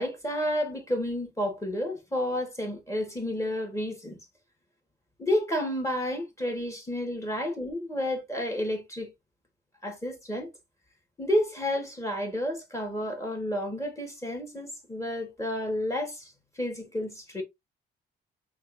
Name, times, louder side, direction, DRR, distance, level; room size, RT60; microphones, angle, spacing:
voice 1, 0.0-4.2 5.2-9.1 9.8-10.5 11.2-17.4, left 1 dB, 15° left, 1.8 m, -31 dB
4.3 x 3.7 x 2.7 m
cardioid pair, 90°, 20 cm